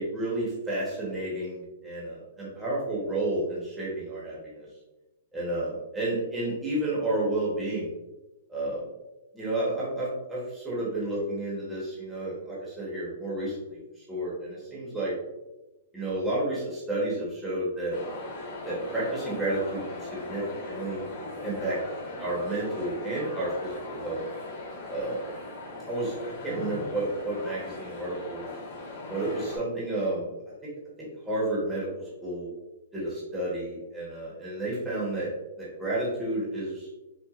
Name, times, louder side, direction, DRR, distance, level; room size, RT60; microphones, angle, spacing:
voice 1, 0.0-4.7 5.3-7.9 8.5-8.9 9.3-15.1 15.9-18.0 18.6-21.0 21.4-21.8 22.2-24.2 24.9-25.2 25.8-28.5 29.1-30.3 31.2-31.9 32.2-32.5 32.9-35.3 35.6-36.9, right 1 dB, 5° right, -7 dB, 1.1 m, -31 dB
sound 1, 17.9-29.6, left 2 dB, 35° left, 1.2 m, -39 dB
5.7 x 2.4 x 2.4 m, 1.0 s
hypercardioid pair, 170°, 0 cm